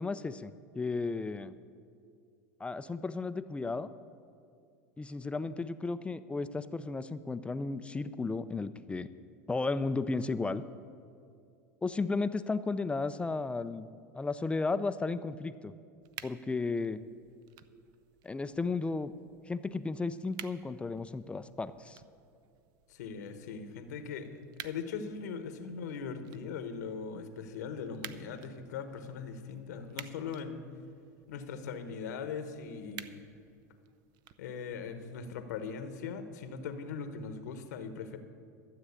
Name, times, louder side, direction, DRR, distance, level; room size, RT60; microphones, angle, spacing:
voice 1, 0.0-1.6 2.6-3.9 5.0-9.1 9.5-10.6 11.8-13.9 14.1-15.7 16.2-17.0 18.2-19.1 19.5-22.0, left 3 dB, 10° left, 12 dB, 0.5 m, -34 dB
sound 1, 16.0-35.0, right 12 dB, 55° right, 0.6 m, -53 dB
voice 2, 22.9-24.3 24.6-30.6 31.3-33.2 34.4-38.2, left 6 dB, 80° left, 9 dB, 1.2 m, -40 dB
13.0 x 7.6 x 8.3 m, 2.4 s
hypercardioid pair, 105°, 9 cm